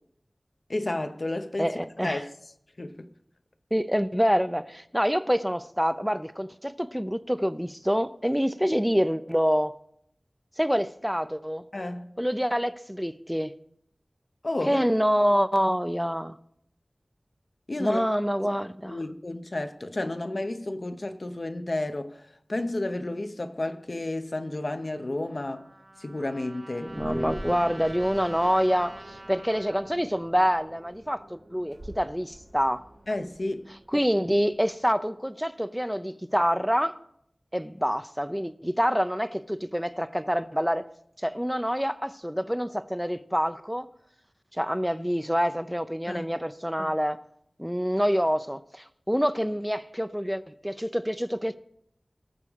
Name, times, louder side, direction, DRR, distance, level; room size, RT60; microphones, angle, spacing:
voice 1, 0.7-1.7 2.0-2.3 2.8-3.1 11.7-12.1 14.4-14.8 17.7-18.0 18.8-22.2 22.5-25.7 26.0-27.0 33.1-33.7 46.1-46.3, left 2 dB, 55° left, 0.9 m, -31 dB
voice 2, 1.6-2.2 3.7-9.7 10.6-11.7 12.2-13.5 14.7-16.4 17.8-19.1 26.8-32.8 33.9-36.9 37.5-40.9 41.2-43.9 44.5-47.2 47.6-51.6, equal, ahead, 0.6 m, -26 dB
Trumpet, 25.3-30.0, right 2 dB, 55° right, 2.1 m, -46 dB
sound 1, 26.9-34.9, right 1 dB, 80° right, 2.7 m, -46 dB
19.0 x 6.9 x 3.6 m
wide cardioid pair, 60°, 0 cm